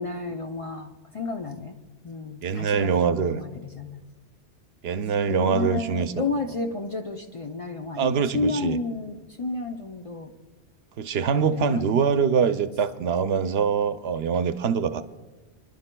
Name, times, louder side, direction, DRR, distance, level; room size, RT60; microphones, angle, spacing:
voice 1, 0.0-1.8 2.0-4.0 5.3-10.3 11.4-11.8, left 3 dB, 40° left, 4 dB, 0.6 m, -31 dB
voice 2, 2.4-3.4 4.8-6.3 7.9-8.8 11.0-15.0, right 6 dB, 70° right, 11 dB, 0.8 m, -24 dB
29.0 x 11.0 x 2.2 m, 1.2 s
omnidirectional pair, 1.1 m